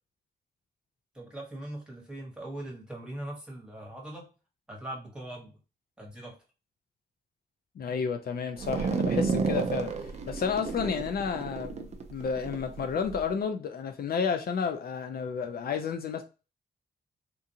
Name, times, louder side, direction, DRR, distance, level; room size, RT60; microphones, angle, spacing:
voice 1, 1.1-4.3 4.7-5.5 6.0-6.4, right 1 dB, 5° right, 1.2 m, -40 dB
voice 2, 7.8-16.2, left 6 dB, 60° left, 0.4 m, -31 dB
sound 1, 8.6-13.2, right 5 dB, 40° right, 0.4 m, -31 dB
3.7 x 2.5 x 2.7 m
wide cardioid pair, 175°, 17 cm